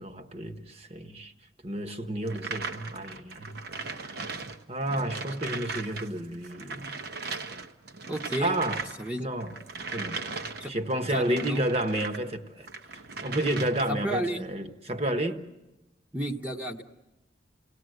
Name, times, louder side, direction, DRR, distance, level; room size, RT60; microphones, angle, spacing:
voice 1, 0.0-1.3 1.6-3.6 3.9-4.0 4.7-7.0 8.4-8.8 9.2-9.6 9.9-10.2 10.7-12.7 13.2-15.4, right 1 dB, 30° right, 1.2 m, -31 dB
sound 1, 2.3-12.2 12.6-14.1, right 4 dB, 50° right, 0.9 m, -38 dB
voice 2, 8.1-8.6 9.0-9.3 10.6-10.7 11.1-11.6 13.9-14.5 16.1-16.8, right 1 dB, 10° right, 1.0 m, -32 dB
30.0 x 17.5 x 7.9 m
head